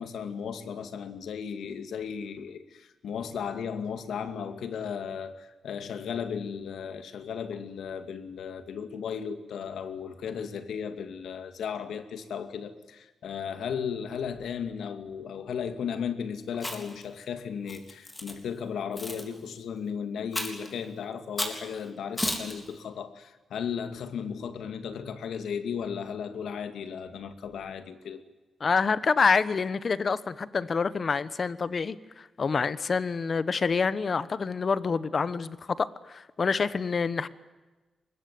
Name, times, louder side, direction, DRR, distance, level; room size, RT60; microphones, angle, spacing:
voice 1, 0.0-28.2, left 7 dB, 85° left, 2.3 m, -35 dB
Chewing mastication, 16.5-17.0 17.7-18.3 19.0-19.2 20.3-20.7 21.4-21.6 22.2-22.5, left 1 dB, 15° left, 3.7 m, -32 dB
voice 2, 28.6-37.3, left 5 dB, 40° left, 1.1 m, -27 dB
24.0 x 21.5 x 9.5 m
wide cardioid pair, 140°, 0 cm